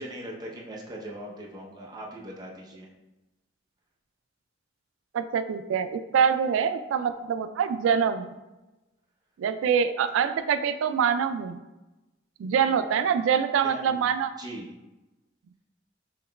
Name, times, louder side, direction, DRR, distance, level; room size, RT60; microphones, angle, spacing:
voice 1, 0.0-2.9 13.6-14.0 14.4-14.7, right 1 dB, 20° right, -3 dB, 0.7 m, -40 dB
voice 2, 5.1-8.3 9.4-11.6 12.4-14.3, right 7 dB, 85° right, 11 dB, 0.3 m, -25 dB
5.7 x 3.0 x 2.2 m, 1.0 s
head